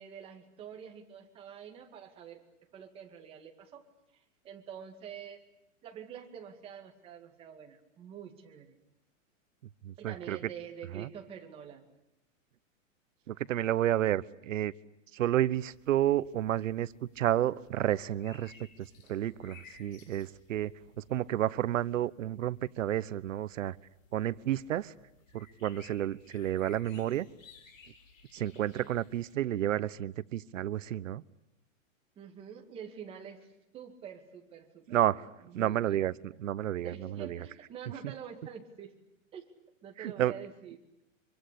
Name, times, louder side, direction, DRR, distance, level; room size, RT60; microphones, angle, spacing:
voice 1, 0.0-2.4 2.7-3.8 4.1-5.4 5.8-8.8 10.0-11.9 32.2-33.5 33.7-36.1 36.8-38.9 39.3-39.5 39.8-40.8, right 8 dB, 15° right, 3 dB, 2.3 m, -46 dB
voice 2, 9.8-10.4 10.9-11.1 13.3-14.7 15.1-18.5 18.8-20.7 21.0-23.8 24.1-24.9 25.3-27.3 28.3-31.2 34.9-35.3 35.5-37.4 40.0-40.3, right 12 dB, 70° right, 18 dB, 1.1 m, -31 dB
sound 1, 15.5-29.3, left 5 dB, 70° left, 6.6 m, -59 dB
26.0 x 24.5 x 8.5 m, 0.86 s
supercardioid pair, 180°, 40 cm